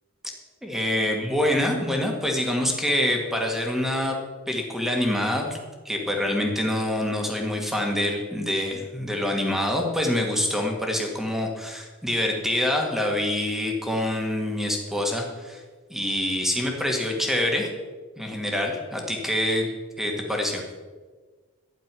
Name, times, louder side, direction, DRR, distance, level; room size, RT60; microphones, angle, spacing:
voice 1, 0.6-4.2 4.5-5.6 5.9-15.6 15.9-17.7 18.2-19.7 20.0-20.6, left 1 dB, ahead, 1 dB, 1.8 m, -26 dB
12.5 x 10.0 x 6.2 m, 1.4 s
head